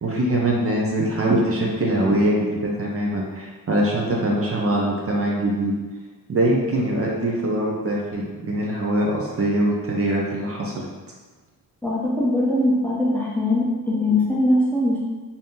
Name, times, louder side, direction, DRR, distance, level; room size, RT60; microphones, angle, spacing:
voice 1, 0.0-5.7 6.3-10.9, right 1 dB, 40° right, -3 dB, 0.6 m, -23 dB
voice 2, 11.8-15.0, left 1 dB, 5° left, -6 dB, 0.5 m, -21 dB
2.7 x 2.7 x 3.6 m, 1.3 s
wide cardioid pair, 140°, 34 cm